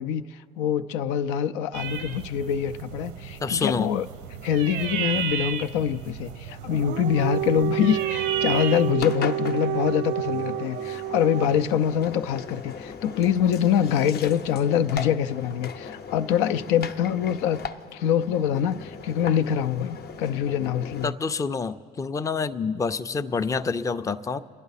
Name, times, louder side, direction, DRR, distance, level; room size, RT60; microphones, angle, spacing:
voice 1, 0.0-4.1 4.4-17.6 17.9-21.1, left 9 dB, 85° left, 10 dB, 0.5 m, -25 dB
sound 1, 1.7-8.9, right 9 dB, 85° right, 0.8 m, -34 dB
voice 2, 3.4-3.9 21.0-24.4, left 5 dB, 15° left, 10 dB, 0.4 m, -27 dB
Dog, 6.6-11.8, right 13 dB, 65° right, 0.4 m, -29 dB
Engine, 9.0-21.1, left 6 dB, 55° left, 0.7 m, -38 dB
28.0 x 10.5 x 4.1 m, 2.2 s
supercardioid pair, 90°, 20 cm